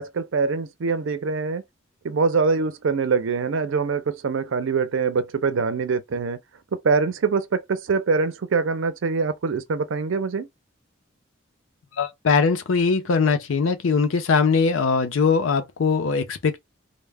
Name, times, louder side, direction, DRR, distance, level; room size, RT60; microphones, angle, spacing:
voice 1, 0.0-1.6 2.0-6.4 6.8-10.5, right 4 dB, 70° right, 0.5 m, -24 dB
voice 2, 12.0-16.6, left 5 dB, 75° left, 0.5 m, -21 dB
2.1 x 2.1 x 3.3 m
head